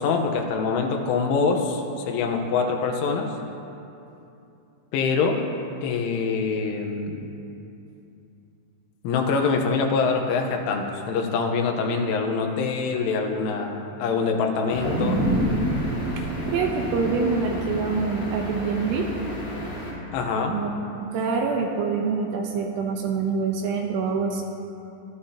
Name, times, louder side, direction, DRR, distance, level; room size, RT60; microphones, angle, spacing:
voice 1, 0.0-3.3 4.9-5.4 5.8-7.2 9.0-15.2 20.1-20.6, left 4 dB, 85° left, 3 dB, 3.6 m, -24 dB
sound 1, 14.7-19.9, right 1 dB, 45° left, 3.9 m, -34 dB
sound 2, 14.8-19.3 19.7-19.8, equal, 40° right, 3.7 m, -28 dB
voice 2, 16.5-19.1 20.5-24.4, right 4 dB, 75° right, 2 dB, 2.7 m, -26 dB
23.0 x 13.0 x 2.9 m, 2.8 s
omnidirectional pair, 5.6 m